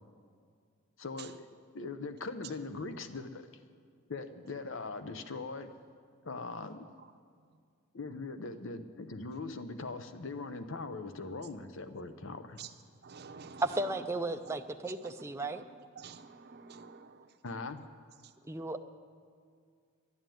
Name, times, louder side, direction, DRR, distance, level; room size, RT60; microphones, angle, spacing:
voice 1, 1.0-1.5 1.7-3.5 4.1-5.7 6.2-6.9 7.9-12.6 17.4-17.8, left 3 dB, 65° left, 10 dB, 0.8 m, -41 dB
voice 2, 13.0-14.1 14.5-14.6 14.8-15.6 16.0-17.3 18.2-18.3, right 5 dB, 50° right, 6 dB, 0.8 m, -49 dB
voice 3, 13.6-15.6 18.5-18.8, right 2 dB, 15° right, 6 dB, 0.5 m, -34 dB
11.0 x 11.0 x 9.2 m, 2.2 s
head